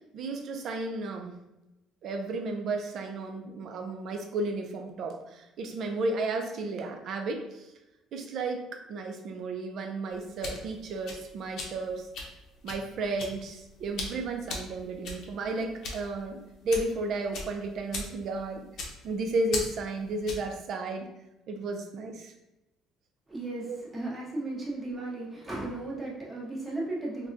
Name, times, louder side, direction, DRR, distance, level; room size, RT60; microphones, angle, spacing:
voice 1, 0.1-1.4 2.0-7.7 8.1-12.1 12.6-18.7 19.0-21.1 21.5-22.3 23.7-23.8, right 2 dB, 55° right, 5 dB, 0.5 m, -33 dB
sound 1, 10.1-20.6, left 3 dB, 65° left, 0.7 m, -40 dB
voice 2, 23.3-27.3, right 2 dB, 15° right, -4 dB, 0.9 m, -35 dB
3.5 x 2.2 x 2.6 m, 0.96 s
cardioid pair, 115°, 0 cm